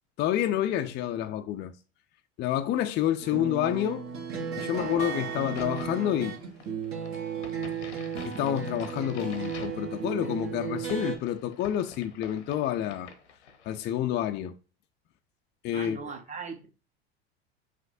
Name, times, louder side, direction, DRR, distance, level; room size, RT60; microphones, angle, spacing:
voice 1, 0.2-1.7 2.4-4.0 4.6-6.4 8.2-13.1 13.7-14.6 15.6-16.0, left 11 dB, 35° left, 0.4 m, -28 dB
sound 1, 3.2-11.2, right 7 dB, 40° right, 1.1 m, -35 dB
voice 2, 4.6-5.0 15.7-16.7, right 5 dB, 20° right, 0.9 m, -40 dB
Crack, 5.3-13.9, left 5 dB, 90° left, 0.8 m, -48 dB
5.7 x 2.6 x 2.6 m
hypercardioid pair, 80°, 33 cm